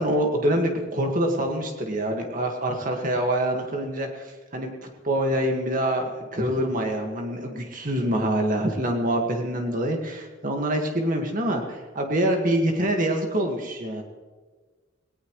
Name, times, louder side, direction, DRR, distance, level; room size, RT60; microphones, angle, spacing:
voice 1, 0.0-4.3 4.5-4.7 5.0-14.0, right 1 dB, 45° right, 2 dB, 1.9 m, -25 dB
19.0 x 18.5 x 3.2 m, 1.4 s
head